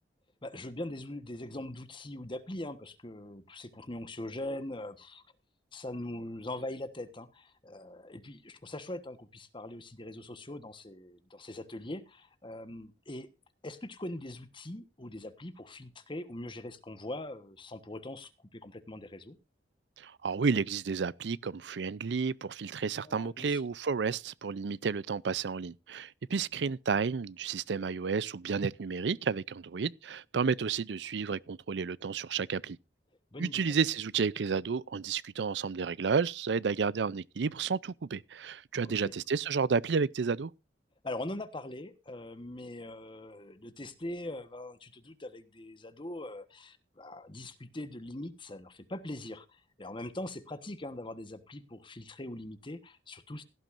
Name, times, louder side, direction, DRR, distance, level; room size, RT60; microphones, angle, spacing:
voice 1, 0.4-5.2 5.7-13.3 13.6-19.4 23.0-23.6 26.3-26.4 33.3-33.7 38.8-39.1 41.0-53.4, left 1 dB, 30° left, 1.3 m, -42 dB
voice 2, 20.0-32.8 33.4-40.5, right 5 dB, 80° right, 0.5 m, -31 dB
16.5 x 12.0 x 2.6 m
head